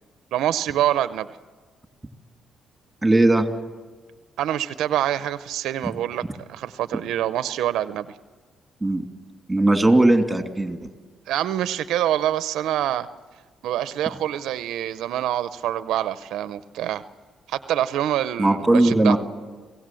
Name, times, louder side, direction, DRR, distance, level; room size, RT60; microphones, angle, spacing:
voice 1, 0.3-1.3 4.4-6.2 6.5-8.1 11.3-13.1 13.6-17.0 17.5-19.1, right 12 dB, 85° right, 13 dB, 0.6 m, -25 dB
voice 2, 3.0-3.5 8.8-9.0 9.5-10.8 18.4-19.2, right 2 dB, 10° right, 5 dB, 2.7 m, -18 dB
27.0 x 17.5 x 7.7 m, 1.4 s
cardioid pair, 90°, 0 cm